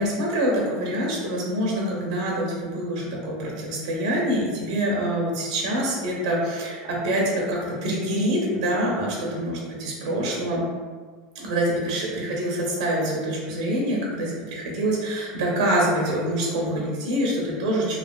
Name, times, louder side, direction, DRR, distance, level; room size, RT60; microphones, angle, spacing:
voice 1, 0.0-10.6 11.3-18.0, right 1 dB, 85° right, -3 dB, 0.8 m, -25 dB
3.2 x 2.4 x 2.2 m, 1.5 s
supercardioid pair, 145°, 4 cm